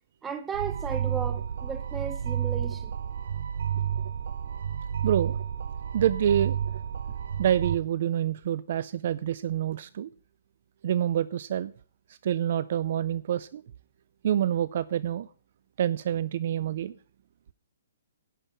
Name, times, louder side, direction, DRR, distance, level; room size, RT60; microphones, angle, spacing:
voice 1, 0.2-2.9, right 7 dB, 10° right, 0.9 m, -35 dB
sound 1, 0.5-7.7, right 8 dB, 65° right, 0.7 m, -31 dB
voice 2, 5.0-5.4 5.9-6.6 7.4-10.1 10.8-11.7 12.2-13.6 14.2-15.3 15.8-17.0, right 10 dB, 45° right, 0.4 m, -27 dB
11.0 x 5.6 x 8.4 m
hypercardioid pair, 170°, 0 cm